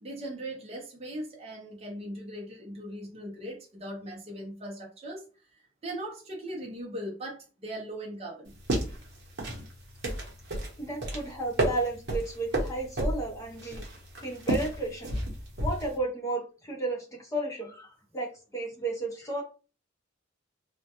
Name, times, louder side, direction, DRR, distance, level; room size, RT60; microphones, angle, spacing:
voice 1, 0.0-5.2 5.8-8.5, right 1 dB, 35° right, -1 dB, 0.6 m, -39 dB
sound 1, 8.5-16.0, right 1 dB, 60° right, 0.8 m, -32 dB
voice 2, 10.8-13.8 14.2-15.1 15.6-19.4, right 2 dB, 15° left, -1 dB, 0.7 m, -33 dB
2.2 x 2.1 x 2.8 m, 0.36 s
head